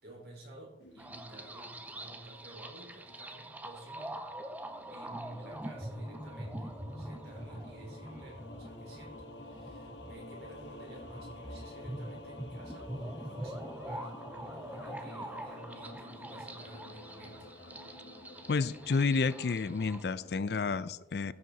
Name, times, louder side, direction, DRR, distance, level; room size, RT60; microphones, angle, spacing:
voice 1, 0.0-4.2 4.9-17.5, right 1 dB, 70° right, -2 dB, 4.5 m, -52 dB
sound 1, 0.8-3.8 4.3-20.8, left 1 dB, 85° left, 1.3 m, -50 dB
sound 2, 1.0-20.0, right 1 dB, 10° right, 0.7 m, -44 dB
voice 2, 18.5-21.3, left 4 dB, 65° left, 17 dB, 0.4 m, -30 dB
14.0 x 7.6 x 4.1 m, 1.0 s
head